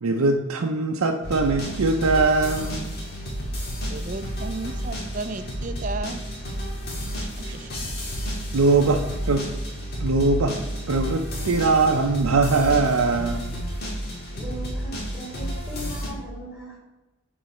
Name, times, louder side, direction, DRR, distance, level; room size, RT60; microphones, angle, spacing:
voice 1, 0.0-3.0 7.4-7.5 8.5-9.5 10.0-10.6 10.9-13.5, right 3 dB, 80° right, 3 dB, 0.6 m, -21 dB
sound 1, 1.2-16.1, equal, 45° left, 1.8 m, -31 dB
voice 2, 3.9-6.2 7.2-7.9, right 3 dB, 35° right, 10 dB, 0.4 m, -34 dB
voice 3, 14.3-16.8, right 1 dB, 5° right, -8 dB, 2.2 m, -38 dB
7.8 x 4.0 x 5.5 m, 1.1 s
head